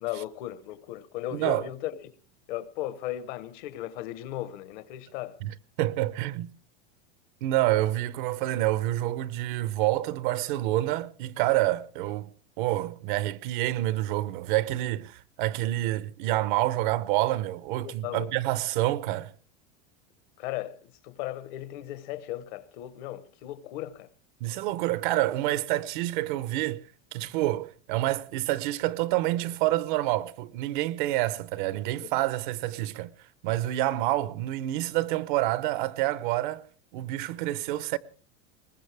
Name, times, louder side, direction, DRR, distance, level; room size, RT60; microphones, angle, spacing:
voice 1, 0.0-2.1 2.5-5.4 17.8-18.3 20.4-24.1 32.0-32.1, left 13 dB, 50° left, 1.0 m, -36 dB
voice 2, 1.3-1.7 5.4-6.5 7.4-12.3 12.6-19.3 24.4-26.8 27.1-36.6 36.9-38.0, right 16 dB, 50° right, 0.8 m, -28 dB
21.5 x 19.5 x 3.4 m
supercardioid pair, 170°, 31 cm